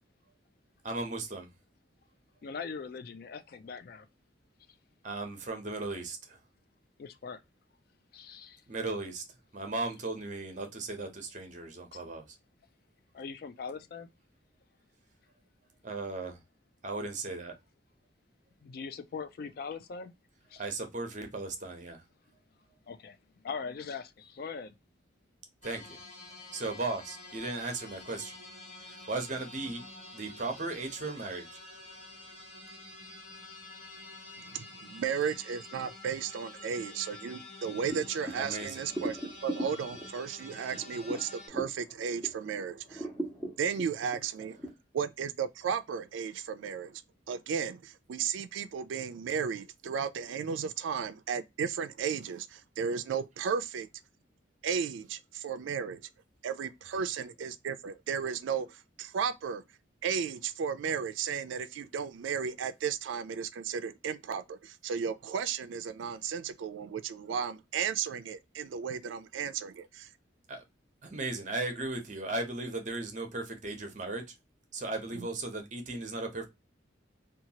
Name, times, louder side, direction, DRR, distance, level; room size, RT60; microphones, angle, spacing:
voice 1, 0.8-1.5 5.0-6.4 8.7-9.2 9.5-12.2 15.8-16.4 16.8-17.5 20.6-22.0 25.6-26.0 26.5-28.3 28.9-29.8 30.1-31.5 38.4-38.8 70.5-70.6 71.0-74.2 74.7-76.5, right 2 dB, 40° right, 0.7 m, -36 dB
voice 2, 2.4-4.1 7.0-7.4 8.1-8.6 11.9-12.0 13.1-14.1 18.6-20.1 20.5-20.6 22.9-23.2 23.4-24.8, left 5 dB, 50° left, 0.3 m, -41 dB
sound 1, 25.6-41.5, left 2 dB, 35° left, 0.9 m, -48 dB
voice 3, 34.4-43.1 43.6-44.6 44.9-47.0 47.3-53.9 54.6-56.1 56.4-59.6 60.0-70.1 75.1-75.3, right 7 dB, 75° right, 0.3 m, -34 dB
sound 2, 37.9-42.5 42.9-44.7, right 1 dB, 5° left, 0.8 m, -40 dB
2.8 x 2.3 x 2.7 m
head